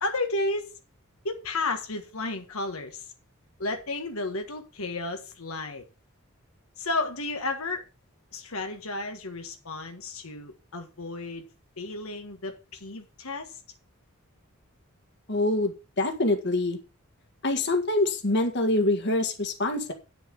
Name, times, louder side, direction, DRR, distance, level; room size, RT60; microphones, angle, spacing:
voice 1, 0.0-0.7 1.2-3.1 3.6-5.8 6.8-7.8 8.3-11.5 11.8-13.6, left 2 dB, 80° left, 4 dB, 1.6 m, -32 dB
voice 2, 15.3-16.8 17.4-19.9, left 2 dB, 55° left, 5 dB, 1.8 m, -25 dB
9.7 x 6.9 x 5.3 m, 0.30 s
head